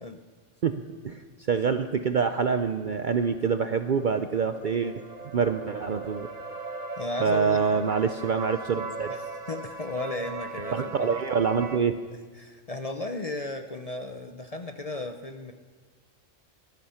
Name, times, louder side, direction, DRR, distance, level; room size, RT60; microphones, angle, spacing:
voice 1, 0.6-1.2 1.5-5.0 5.3-6.3 7.2-9.1 10.7-12.0, right 6 dB, 55° right, 9 dB, 0.6 m, -26 dB
sound 1, 2.6-11.8, right 3 dB, 35° right, 1.2 m, -39 dB
voice 2, 7.0-7.9 9.1-11.1 12.4-15.5, left 2 dB, 35° left, 7 dB, 0.7 m, -35 dB
19.5 x 12.0 x 5.7 m, 1.5 s
omnidirectional pair, 1.3 m